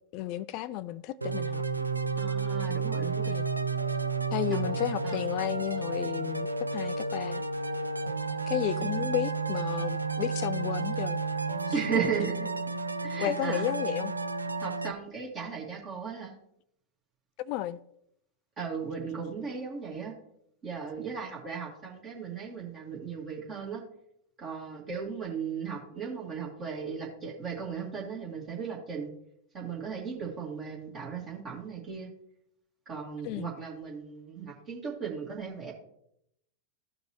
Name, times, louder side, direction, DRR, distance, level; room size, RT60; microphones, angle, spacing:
voice 1, 0.1-1.6 3.3-3.4 4.3-7.5 8.5-11.2 13.2-14.1 17.4-17.8 33.2-33.5, left 14 dB, 45° left, 0.3 m, -33 dB
sound 1, 1.2-14.9, right 4 dB, 85° right, 0.5 m, -31 dB
voice 2, 2.2-3.3 4.5-4.8 5.0-5.2 8.8-9.0 11.7-12.5 13.0-13.7 14.6-16.3 18.6-20.1 20.6-23.8 24.4-29.1 29.5-32.1 32.9-35.7, right 6 dB, 30° right, 2.0 m, -36 dB
14.5 x 5.2 x 3.0 m
figure-of-eight pair, 90°, 0 cm